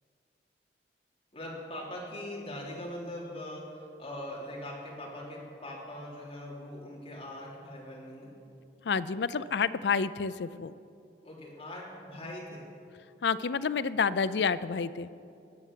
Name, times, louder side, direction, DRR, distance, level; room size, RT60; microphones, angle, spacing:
voice 1, 1.3-8.3 11.2-12.7, left 1 dB, 35° left, -4 dB, 3.8 m, -41 dB
voice 2, 8.8-10.7 13.2-15.1, left 5 dB, 75° left, 15 dB, 0.5 m, -29 dB
20.0 x 8.1 x 7.5 m, 2.5 s
head